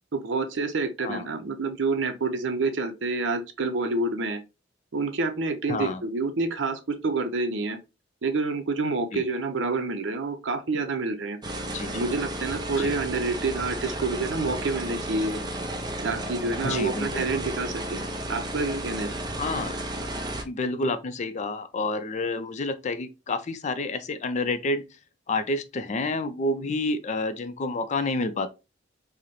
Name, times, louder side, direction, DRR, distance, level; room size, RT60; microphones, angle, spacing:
voice 1, 0.1-4.4 4.9-7.8 8.2-11.4 11.9-15.4 16.0-18.0 18.3-19.1, right 3 dB, 70° right, 0.6 m, -28 dB
voice 2, 5.7-6.0 9.1-9.2 11.7-12.0 12.8-12.9 16.6-17.3 19.4-19.8 20.4-24.8 25.3-28.5, left 2 dB, 40° left, 0.4 m, -29 dB
sound 1, 11.4-20.4, right 1 dB, 20° right, 0.5 m, -33 dB
4.7 x 2.1 x 2.9 m
head